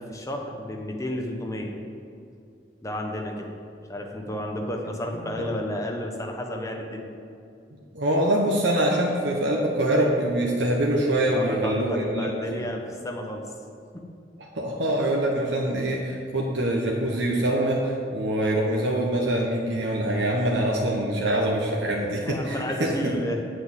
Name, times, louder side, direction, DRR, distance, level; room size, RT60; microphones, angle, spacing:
voice 1, 0.0-1.7 2.8-3.5 3.9-7.1 11.3-13.4 21.9-23.5, left 1 dB, 20° left, 1 dB, 1.1 m, -32 dB
voice 2, 7.9-12.3 12.6-12.7 14.5-23.1, right 1 dB, 85° right, -2 dB, 1.1 m, -24 dB
8.2 x 6.5 x 7.7 m, 2.4 s
head